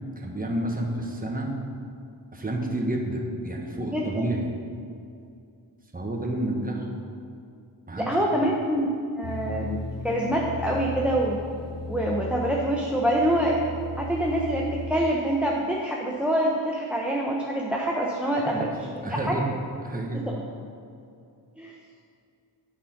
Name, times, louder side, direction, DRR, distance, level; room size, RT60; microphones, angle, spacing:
voice 1, 0.2-1.5 2.3-4.5 5.9-6.9 7.9-8.1 18.4-18.6 19.0-19.4 19.8-20.2, right 1 dB, 20° right, 0 dB, 1.3 m, -30 dB
voice 2, 3.9-4.3 8.0-11.4 11.9-13.6 14.0-19.4 20.1-20.3 21.6-21.7, right 1 dB, 5° right, -2 dB, 0.9 m, -26 dB
sound 1, 9.2-15.0, left 1 dB, 35° left, 0.8 m, -36 dB
8.9 x 5.5 x 5.9 m, 2.5 s
cardioid pair, 55°, 44 cm